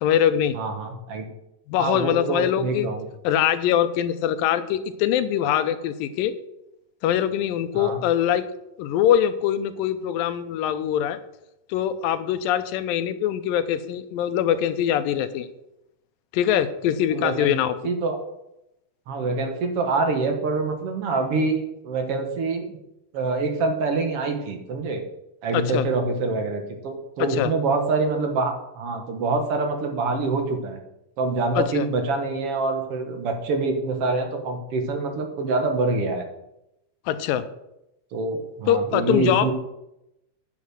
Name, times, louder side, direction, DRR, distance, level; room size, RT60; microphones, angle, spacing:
voice 1, 0.0-0.6 1.7-2.9 3.2-6.3 7.0-8.4 8.8-11.2 11.7-15.5 16.3-17.7 25.5-25.8 27.2-27.5 31.6-31.9 37.1-37.4 38.7-39.5, left 10 dB, 85° left, 11 dB, 2.4 m, -23 dB
voice 2, 0.5-1.3 1.8-3.1 7.7-8.0 17.1-17.5 17.8-18.2 19.1-22.8 23.1-25.0 25.4-30.8 31.2-36.2 38.1-39.5, right 3 dB, 55° right, 5 dB, 1.8 m, -25 dB
9.1 x 8.3 x 6.2 m, 0.86 s
omnidirectional pair, 4.0 m